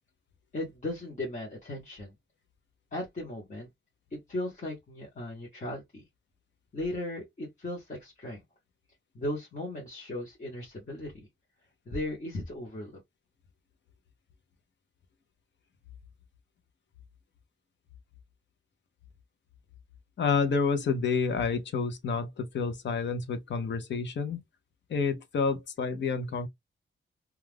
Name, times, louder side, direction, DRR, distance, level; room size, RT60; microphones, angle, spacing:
voice 1, 0.5-2.1 2.9-3.7 4.1-6.0 6.7-8.4 9.1-11.3 11.9-12.9, left 1 dB, 40° left, 0.9 m, -37 dB
voice 2, 20.2-24.4 24.9-26.5, left 5 dB, 60° left, 0.7 m, -29 dB
2.3 x 2.3 x 3.3 m
wide cardioid pair, 155°, 21 cm